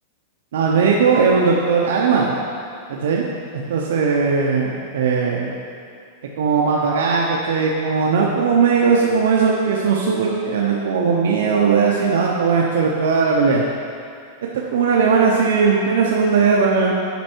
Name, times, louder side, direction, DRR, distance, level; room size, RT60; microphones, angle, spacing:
voice 1, 0.5-2.3 2.9-3.2 3.5-5.5 6.4-13.6 14.5-16.9, right 5 dB, 80° right, -2 dB, 0.7 m, -18 dB
8.2 x 5.3 x 4.5 m, 2.3 s
supercardioid pair, 175°, 0 cm